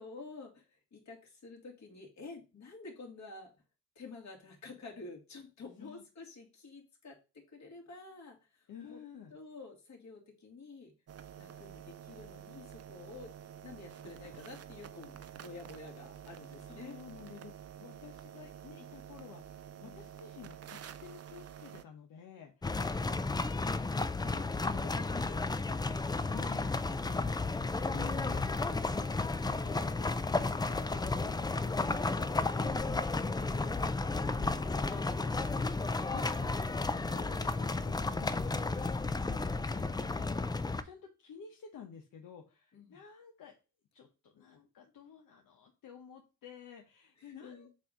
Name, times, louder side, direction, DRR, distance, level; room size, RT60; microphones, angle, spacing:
voice 1, 0.0-3.5 4.0-9.0 9.3-10.9 11.3-13.3 13.6-17.0 19.8-20.1 22.7-23.0 27.9-28.4 38.7-39.0 42.7-43.0 47.2-47.7, left 3 dB, 55° left, 0 dB, 2.4 m, -50 dB
voice 2, 8.7-9.4 14.3-14.6 16.6-23.6 23.9-25.6 26.1-35.7 36.0-36.6 36.9-40.3 40.8-43.5 43.9-47.7, left 7 dB, 80° left, 2 dB, 1.1 m, -52 dB
sound 1, 11.1-21.8, right 9 dB, 50° right, 0.6 m, -49 dB
sound 2, 22.6-40.8, left 3 dB, 15° left, 0.4 m, -33 dB
7.4 x 2.8 x 5.0 m, 0.30 s
cardioid pair, 85°, 32 cm